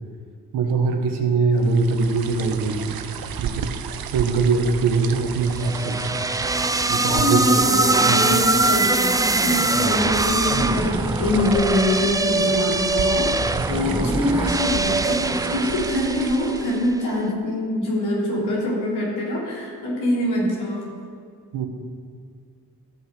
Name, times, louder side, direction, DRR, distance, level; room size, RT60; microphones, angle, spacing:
voice 1, 0.5-3.0 3.4-6.1 6.9-7.4 8.1-8.3 21.5-21.7, right 4 dB, 80° right, 4 dB, 1.5 m, -22 dB
sound 1, 1.6-17.0, right 8 dB, 65° right, 0.8 m, -33 dB
sound 2, 5.6-16.9, right 2 dB, 10° right, 0.4 m, -22 dB
voice 2, 7.1-20.9, left 1 dB, 85° left, -4 dB, 3.4 m, -24 dB
14.5 x 5.7 x 7.7 m, 2.2 s
supercardioid pair, 50°, 39 cm